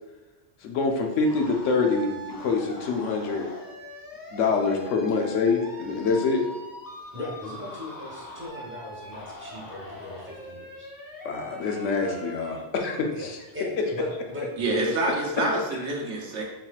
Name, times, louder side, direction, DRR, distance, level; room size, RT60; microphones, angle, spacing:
voice 1, 0.6-3.5 4.3-6.4 11.2-13.4, left 4 dB, 85° left, 2 dB, 1.0 m, -25 dB
sound 1, 1.2-12.6, equal, 35° left, 0.3 m, -42 dB
voice 2, 7.1-10.9 13.1-13.3 13.5-14.9, left 2 dB, 10° right, -4 dB, 0.8 m, -38 dB
voice 3, 14.6-16.4, right 2 dB, 85° right, -1 dB, 1.1 m, -27 dB
4.2 x 3.9 x 2.4 m, 1.1 s
omnidirectional pair, 1.2 m